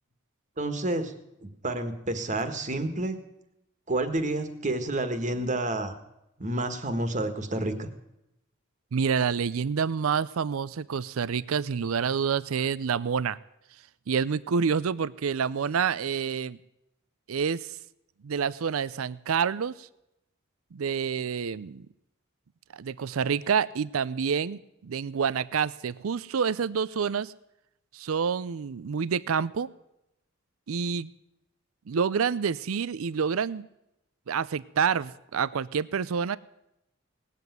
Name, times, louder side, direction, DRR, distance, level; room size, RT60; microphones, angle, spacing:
voice 1, 0.6-1.1 1.4-3.2 3.9-5.9 6.4-7.9, right 2 dB, 35° right, 8 dB, 1.6 m, -29 dB
voice 2, 8.9-13.4 14.1-16.6 17.3-17.8 18.2-19.9 20.7-21.9 22.7-27.3 27.9-29.7 30.7-31.1 31.9-33.6 34.3-36.4, right 6 dB, 80° right, 18 dB, 0.5 m, -28 dB
19.0 x 8.3 x 9.3 m, 0.86 s
head